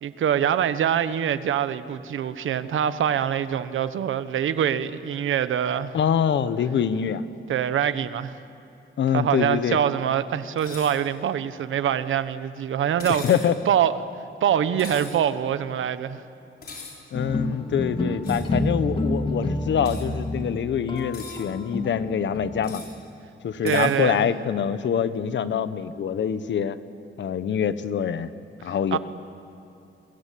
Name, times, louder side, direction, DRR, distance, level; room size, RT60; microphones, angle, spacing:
voice 1, 0.0-5.9 7.5-8.3 9.1-13.2 13.7-13.9 14.4-16.2 23.6-24.3 28.7-29.0, right 9 dB, 90° right, 13 dB, 1.1 m, -24 dB
voice 2, 5.9-7.2 9.0-9.8 13.2-13.6 17.1-22.8 23.4-26.8 27.2-28.3 28.6-29.0, left 8 dB, 70° left, 13 dB, 1.1 m, -25 dB
sound 1, 10.6-11.0 13.0-13.5 14.8-15.2 16.6-17.0 18.2-18.5 19.8-20.0 21.0-21.4 22.6-22.9 23.7-23.9, left 4 dB, 50° left, 5.2 m, -40 dB
sound 2, 17.1-22.6, left 1 dB, 25° left, 2.1 m, -29 dB
29.5 x 23.0 x 8.5 m, 2.7 s
wide cardioid pair, 155°, 20 cm